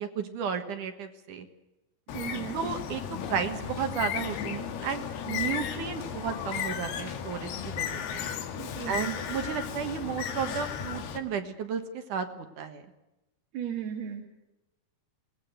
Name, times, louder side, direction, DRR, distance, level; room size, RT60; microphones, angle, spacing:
voice 1, 0.0-1.5 2.5-3.0 3.3-8.2 8.9-12.9, right 7 dB, 60° right, 7 dB, 2.6 m, -33 dB
Bird, 2.1-11.2, left 8 dB, 90° left, 3.7 m, -35 dB
voice 2, 2.1-2.6 8.6-9.1 13.5-14.2, right 8 dB, 80° right, 1 dB, 4.1 m, -36 dB
22.0 x 19.0 x 7.9 m, 0.99 s
omnidirectional pair, 4.4 m